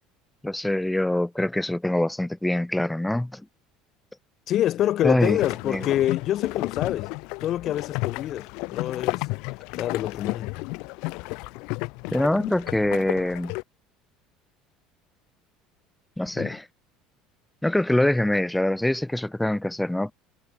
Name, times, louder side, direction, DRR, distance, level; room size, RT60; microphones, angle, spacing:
voice 1, 0.4-3.4 5.0-5.4 5.7-5.8 12.1-13.5 16.2-16.6 17.6-20.1, left 1 dB, 5° left, 0.5 m, -24 dB
voice 2, 4.5-7.1 7.4-9.3 9.7-10.6 16.4-16.6, left 12 dB, 50° left, 0.6 m, -26 dB
sound 1, 5.2-13.6, left 28 dB, 70° left, 1.9 m, -32 dB
supercardioid pair, 100°, 0 cm